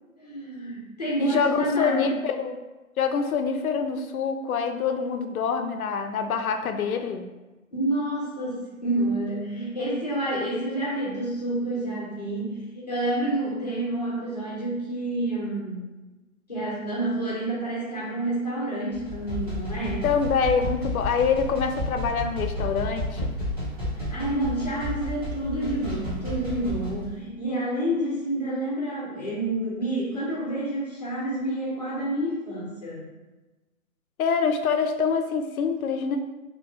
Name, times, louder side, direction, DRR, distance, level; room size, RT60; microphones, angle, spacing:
voice 1, 0.2-2.2 7.7-15.9 16.5-20.1 24.1-33.0, right 1 dB, 30° left, -6 dB, 0.7 m, -29 dB
voice 2, 1.2-2.6 3.0-7.2 20.0-23.3 34.2-36.2, left 6 dB, 85° left, 6 dB, 0.5 m, -25 dB
sound 1, 18.9-27.1, left 1 dB, 25° right, 0.9 m, -32 dB
2.8 x 2.7 x 2.7 m, 1.1 s
hypercardioid pair, 175°, 42 cm